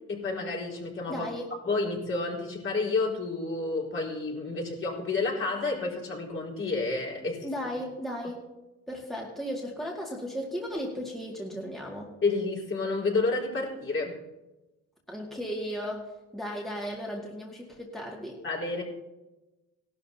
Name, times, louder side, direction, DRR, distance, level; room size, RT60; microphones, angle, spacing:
voice 1, 0.1-1.3 1.6-7.5 12.2-14.2 18.4-18.8, left 3 dB, 45° left, -3 dB, 4.6 m, -30 dB
voice 2, 1.1-1.5 7.4-8.5 8.9-12.1 15.1-18.4, equal, ahead, -3 dB, 2.2 m, -35 dB
17.5 x 12.5 x 2.8 m, 1.0 s
cardioid pair, 90°, 30 cm